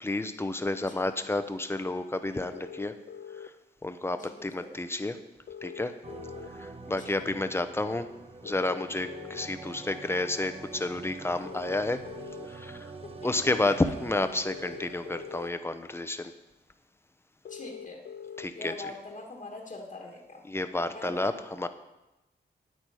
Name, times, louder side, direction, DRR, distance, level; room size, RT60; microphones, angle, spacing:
voice 1, 0.0-2.9 3.8-5.2 5.6-5.9 6.6-8.1 8.4-12.0 12.5-12.9 13.2-13.7 14.0-16.3 18.4-18.7 20.5-21.7, left 2 dB, 15° left, 9 dB, 0.7 m, -31 dB
voice 2, 0.7-1.0 4.1-4.8 7.0-7.1 13.0-13.7 17.5-18.0 18.5-20.5 20.9-21.4, left 2 dB, 45° left, -1 dB, 1.5 m, -44 dB
sound 1, 2.5-3.5 5.5-6.5 8.4-9.5 11.4-12.5 14.4-15.5 17.4-18.5, left 8 dB, 65° left, 0.6 m, -43 dB
sound 2, 6.0-15.5, right 3 dB, 30° right, 0.9 m, -45 dB
9.8 x 8.6 x 4.9 m, 0.96 s
wide cardioid pair, 85°, 18 cm